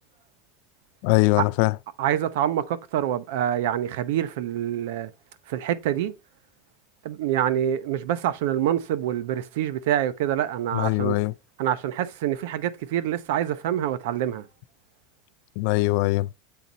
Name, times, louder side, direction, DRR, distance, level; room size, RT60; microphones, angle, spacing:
voice 1, 1.0-1.7 10.7-11.3 15.6-16.3, left 20 dB, 65° left, 0.3 m, -21 dB
voice 2, 2.0-5.1 5.5-6.1 7.0-11.2 11.6-14.5, right 11 dB, 80° right, 0.7 m, -26 dB
7.8 x 4.0 x 4.1 m
supercardioid pair, 145°, 0 cm